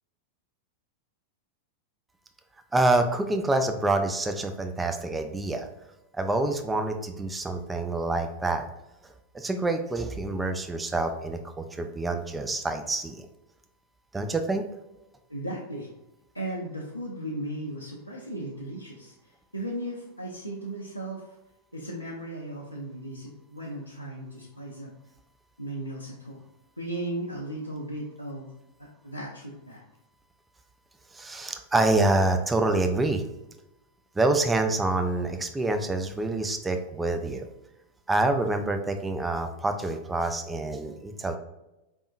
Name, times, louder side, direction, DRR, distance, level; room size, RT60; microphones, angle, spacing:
voice 1, 2.7-5.7 6.1-8.7 9.0-13.3 14.1-14.6 31.1-33.2 34.2-37.5 38.1-41.4, right 2 dB, 10° right, 6 dB, 0.5 m, -27 dB
voice 2, 15.3-15.9 16.3-21.2 21.7-24.9 25.6-26.4 26.8-28.5 28.8-29.8, right 1 dB, 90° left, -5 dB, 0.6 m, -36 dB
4.4 x 3.5 x 2.5 m, 0.94 s
figure-of-eight pair, 90°, 0 cm